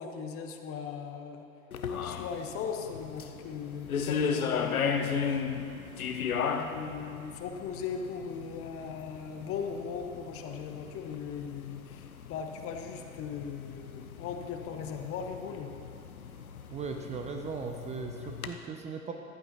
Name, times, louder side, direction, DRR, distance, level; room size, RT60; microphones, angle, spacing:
voice 1, 0.0-1.4 2.0-5.8 6.5-15.7, left 6 dB, 35° left, 5 dB, 0.9 m, -38 dB
sound 1, 1.7-18.5, left 6 dB, 85° left, 0.7 m, -36 dB
voice 2, 16.7-19.1, right 5 dB, 15° right, 4 dB, 0.4 m, -38 dB
14.5 x 11.0 x 2.8 m, 2.7 s
figure-of-eight pair, 90°, 42 cm